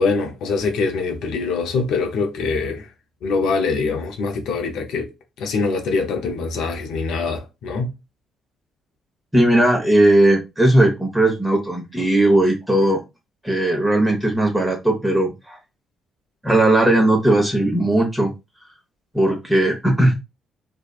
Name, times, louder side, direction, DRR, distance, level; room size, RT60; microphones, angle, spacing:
voice 1, 0.0-2.9 3.2-5.1 5.4-7.9, left 4 dB, 70° left, 0.6 m, -23 dB
voice 2, 9.3-13.0 13.4-15.6 16.4-18.3 19.1-20.1, right 1 dB, 10° right, 0.8 m, -17 dB
2.5 x 2.2 x 2.3 m
hypercardioid pair, 50°, 0 cm